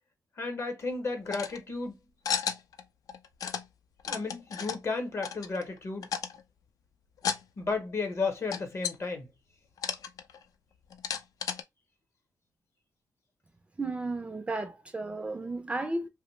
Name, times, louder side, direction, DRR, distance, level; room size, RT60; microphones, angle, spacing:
voice 1, 0.4-1.9 4.0-6.1 7.6-9.3, left 4 dB, 40° left, 0.8 m, -33 dB
sound 1, 1.3-1.6 2.3-2.8 3.1-3.7 4.0-4.8 5.2-5.8 6.0-6.4 7.2-7.4 7.7-7.8 8.5-9.0 9.8-10.4 10.9-11.6, left 7 dB, 65° left, 0.4 m, -33 dB
voice 2, 13.8-16.1, right 2 dB, 20° right, 0.4 m, -33 dB
2.6 x 2.0 x 3.0 m
wide cardioid pair, 130°, 6 cm